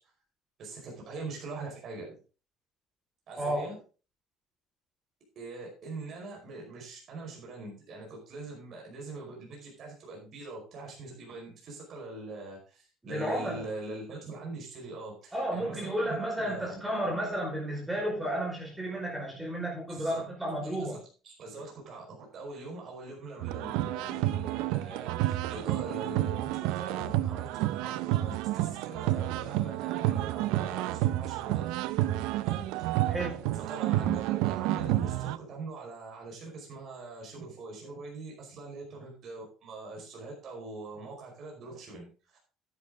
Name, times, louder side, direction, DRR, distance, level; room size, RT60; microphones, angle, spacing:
voice 1, 0.6-2.2 3.3-3.8 5.3-16.8 19.9-20.2 20.8-20.9 21.2-31.7 32.4-33.1 33.5-42.4, right 3 dB, 40° right, -1 dB, 5.0 m, -42 dB
voice 2, 3.4-3.7 13.0-13.7 15.3-21.0 33.1-33.6, right 1 dB, 10° right, -1 dB, 4.9 m, -32 dB
sound 1, 23.4-35.4, right 15 dB, 85° right, 0.5 m, -30 dB
10.5 x 9.6 x 3.8 m, 0.36 s
cardioid pair, 155°, 0 cm